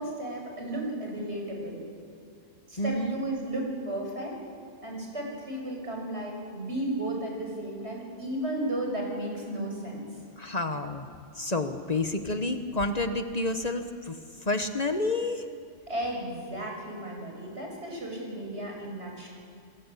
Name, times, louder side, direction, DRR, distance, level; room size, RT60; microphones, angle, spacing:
voice 1, 0.0-1.8 2.7-4.3 4.8-10.1 15.9-19.3, right 1 dB, 80° right, 0 dB, 7.2 m, -34 dB
voice 2, 2.8-3.2 10.4-11.1 11.3-15.4, left 2 dB, 40° left, 7 dB, 1.3 m, -29 dB
28.5 x 21.0 x 8.4 m, 2.3 s
omnidirectional pair, 1.1 m